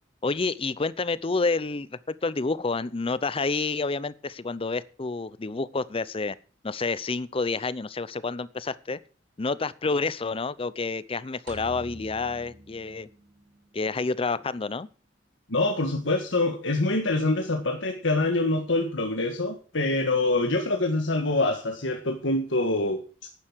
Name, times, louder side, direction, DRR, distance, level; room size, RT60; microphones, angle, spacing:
voice 1, 0.2-6.4 6.6-9.0 9.4-13.1 13.7-14.9, left 3 dB, 30° left, 17 dB, 0.6 m, -29 dB
sound 1, 11.5-13.7, left 1 dB, 70° right, 3.0 m, -46 dB
voice 2, 15.5-23.3, left 2 dB, 85° left, 3 dB, 1.7 m, -25 dB
11.5 x 9.4 x 6.2 m, 0.38 s
head